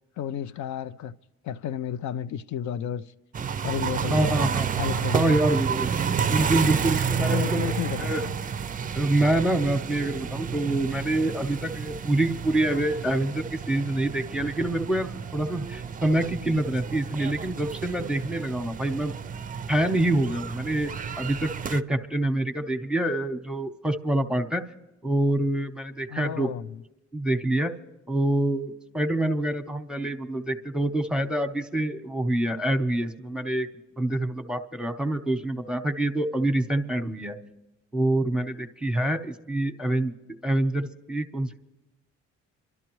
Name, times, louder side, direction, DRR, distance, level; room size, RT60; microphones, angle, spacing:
voice 1, 0.2-1.2 1.4-3.1 3.6-4.5 4.7-5.4 7.1-8.3 26.1-26.7, left 10 dB, 75° left, 0.4 m, -32 dB
sound 1, 3.3-21.8, right 7 dB, 30° right, 0.4 m, -30 dB
voice 2, 4.1-4.7 5.1-5.9 6.3-7.7 8.0-8.2 9.0-19.1 19.7-20.9 21.2-24.6 25.0-26.5 27.1-27.7 28.1-33.7 34.0-37.4 37.9-40.1 40.4-41.6, right 1 dB, 5° right, 0.9 m, -26 dB
26.5 x 12.0 x 3.1 m
cardioid pair, 90°, 30 cm